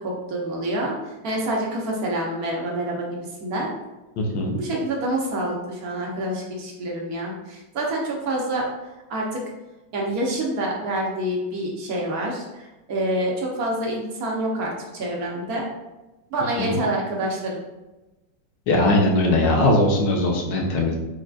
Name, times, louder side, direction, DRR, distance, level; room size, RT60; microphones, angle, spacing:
voice 1, 0.0-3.7 4.5-8.7 9.1-9.4 9.9-15.6 16.3-17.6, right 1 dB, 55° right, -2 dB, 1.2 m, -27 dB
voice 2, 4.2-4.6 16.6-16.8 18.7-21.0, left 1 dB, 75° left, 0 dB, 1.4 m, -20 dB
4.7 x 4.2 x 2.4 m, 1.1 s
omnidirectional pair, 2.1 m